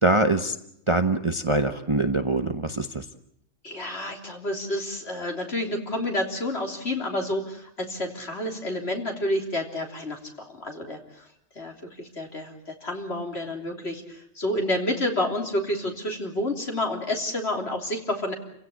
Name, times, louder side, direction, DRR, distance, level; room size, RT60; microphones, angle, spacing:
voice 1, 0.0-0.6 0.9-3.0, right 2 dB, 25° right, 7 dB, 1.0 m, -23 dB
voice 2, 3.6-10.2 10.5-11.2 11.6-18.3, left 1 dB, 50° left, 2 dB, 3.7 m, -29 dB
29.5 x 16.5 x 8.6 m, 0.76 s
omnidirectional pair, 1.4 m